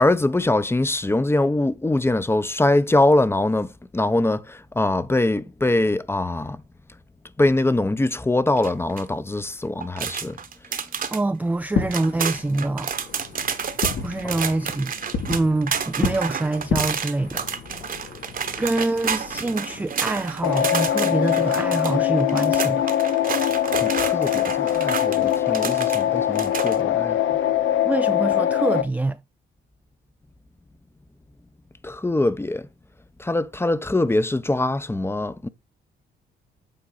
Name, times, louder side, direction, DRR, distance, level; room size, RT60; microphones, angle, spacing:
voice 1, 0.0-6.6 7.4-10.4 23.7-27.4 31.8-32.7 33.2-35.5, left 2 dB, 10° left, 0.8 m, -23 dB
sound 1, 8.6-9.0 9.8-11.2 11.6-11.7 11.9-26.0 26.3-26.8, right 6 dB, 45° right, 1.2 m, -30 dB
voice 2, 11.1-12.9 14.0-14.9 15.3-17.4 18.6-22.9 27.8-29.2, right 2 dB, 10° right, 0.4 m, -25 dB
Fireworks, 11.6-20.9, left 5 dB, 65° left, 2.3 m, -33 dB
sound 2, 20.4-28.8, left 11 dB, 80° left, 0.8 m, -22 dB
8.8 x 4.5 x 3.9 m
cardioid pair, 90°, 20 cm